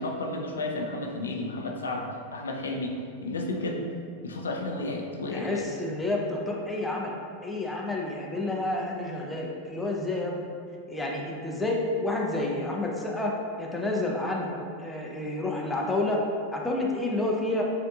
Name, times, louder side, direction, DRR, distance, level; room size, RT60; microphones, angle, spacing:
voice 1, 0.0-3.8 4.2-5.7, left 2 dB, 70° left, 1 dB, 0.4 m, -32 dB
voice 2, 5.3-7.1 7.4-10.4 10.9-14.5 14.8-16.2 16.5-17.6, left 2 dB, 5° left, -2 dB, 0.6 m, -29 dB
7.5 x 2.6 x 2.3 m, 2.3 s
figure-of-eight pair, 90°, 0 cm